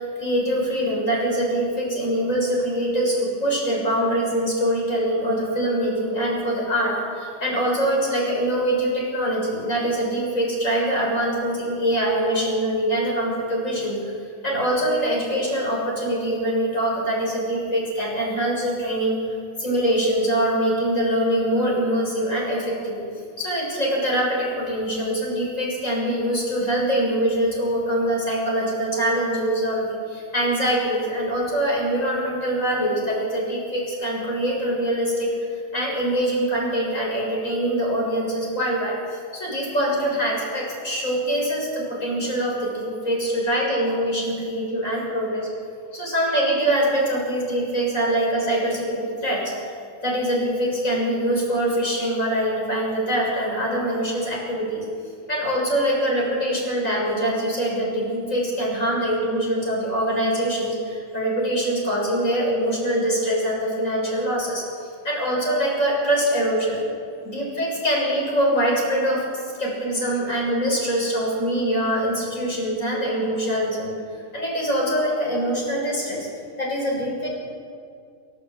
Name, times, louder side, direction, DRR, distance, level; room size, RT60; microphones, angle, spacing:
voice 1, 0.0-14.1 14.4-19.2 19.6-23.0 23.4-45.5 45.9-49.7 50.0-54.9 55.3-66.8 67.2-73.9 74.3-76.3 76.6-77.3, right 1 dB, 80° left, -2 dB, 7.2 m, -24 dB
28.0 x 15.0 x 8.9 m, 2.3 s
omnidirectional pair, 1.3 m